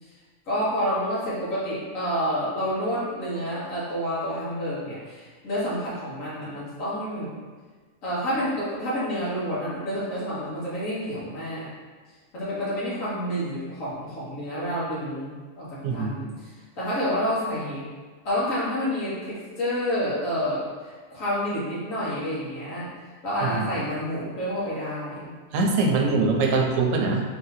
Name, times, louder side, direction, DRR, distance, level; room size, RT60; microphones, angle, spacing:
voice 1, 0.5-7.3 8.0-11.7 12.3-17.8 18.2-22.9 23.2-25.3, equal, 85° left, -9 dB, 1.7 m, -29 dB
voice 2, 15.8-16.2 23.4-23.7 25.5-27.2, right 3 dB, 80° right, 1 dB, 1.0 m, -23 dB
3.5 x 2.7 x 4.0 m, 1.4 s
omnidirectional pair, 1.4 m